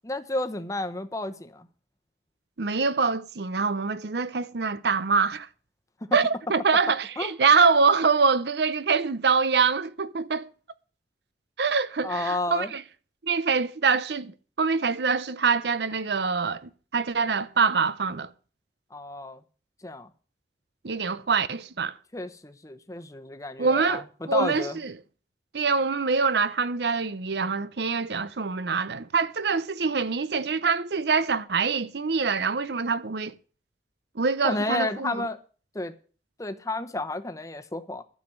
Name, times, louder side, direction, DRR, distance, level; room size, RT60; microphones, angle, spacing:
voice 1, 0.0-1.7 7.2-7.3 12.0-12.7 18.9-19.4 19.8-20.1 22.1-24.8 34.4-35.4 35.7-35.9 36.4-38.0, left 2 dB, 20° left, 1.0 m, -31 dB
voice 2, 2.6-5.5 6.1-10.5 11.6-12.8 13.2-18.3 20.8-22.0 23.6-24.0 24.3-24.9 25.5-33.3 34.2-35.3, right 5 dB, 65° right, 0.7 m, -25 dB
12.0 x 6.2 x 9.2 m
head